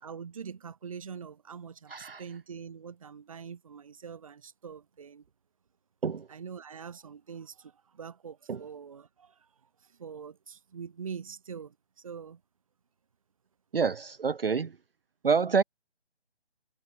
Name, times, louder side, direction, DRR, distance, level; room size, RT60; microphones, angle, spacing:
voice 1, 0.0-5.2 6.3-9.5 9.8-12.4, right 6 dB, 30° right, 1.0 m, -44 dB
voice 2, 1.9-2.2 6.0-6.2 8.5-8.6 13.7-14.7 15.2-15.6, right 5 dB, 55° right, 0.8 m, -27 dB
figure-of-eight pair, 155°, 34 cm